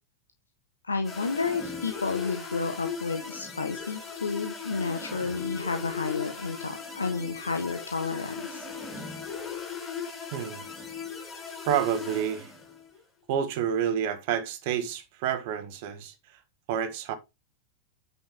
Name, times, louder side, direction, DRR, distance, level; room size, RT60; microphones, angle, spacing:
voice 1, 0.8-8.6, left 4 dB, 75° left, 1.1 m, -31 dB
sound 1, 1.0-12.9, left 6 dB, 10° left, 6.3 m, -38 dB
voice 2, 10.3-10.6 11.7-12.5 13.3-16.1 16.7-17.1, right 9 dB, 50° right, 1.6 m, -29 dB
9.1 x 6.3 x 3.5 m
figure-of-eight pair, 90°, 0 cm